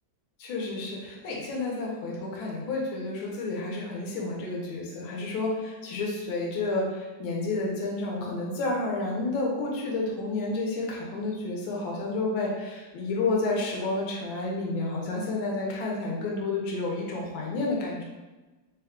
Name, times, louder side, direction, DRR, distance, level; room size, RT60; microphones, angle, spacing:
voice 1, 0.4-18.0, left 2 dB, 80° left, -2 dB, 1.5 m, -30 dB
3.5 x 2.3 x 3.5 m, 1.2 s
omnidirectional pair, 2.1 m